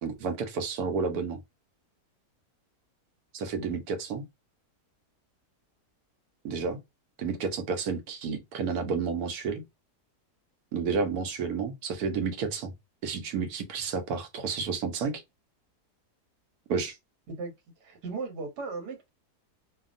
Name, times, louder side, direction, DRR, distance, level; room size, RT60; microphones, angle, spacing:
voice 1, 0.0-1.4 3.3-4.2 6.4-6.8 7.2-9.6 10.7-12.7 13.0-15.2 16.7-17.0, right 5 dB, 70° right, 1.2 m, -31 dB
voice 2, 17.8-19.1, right 4 dB, 90° right, 1.5 m, -36 dB
2.8 x 2.4 x 2.4 m
omnidirectional pair, 1.7 m